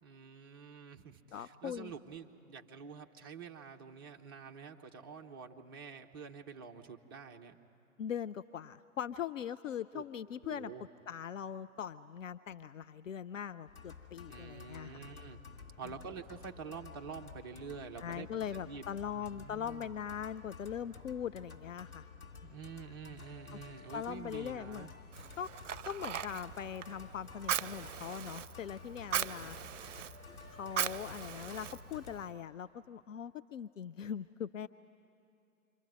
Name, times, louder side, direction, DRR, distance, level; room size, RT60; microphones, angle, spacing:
voice 1, 0.0-7.6 9.9-10.0 10.4-10.9 14.3-15.4 15.8-19.9 22.4-24.9, right 6 dB, 15° right, 3 dB, 0.5 m, -48 dB
voice 2, 1.3-1.9 8.0-10.7 11.1-15.1 15.8-15.9 18.0-22.1 23.5-23.6 23.9-24.9 25.4-25.5 25.9-29.6 30.5-34.7, left 8 dB, 65° left, 12 dB, 0.5 m, -41 dB
sound 1, 13.7-32.3, left 5 dB, 80° left, 2.4 m, -52 dB
Fire, 25.1-32.3, right 9 dB, 60° right, 0.6 m, -40 dB
27.5 x 24.0 x 5.4 m, 2.7 s
figure-of-eight pair, 125°, 42 cm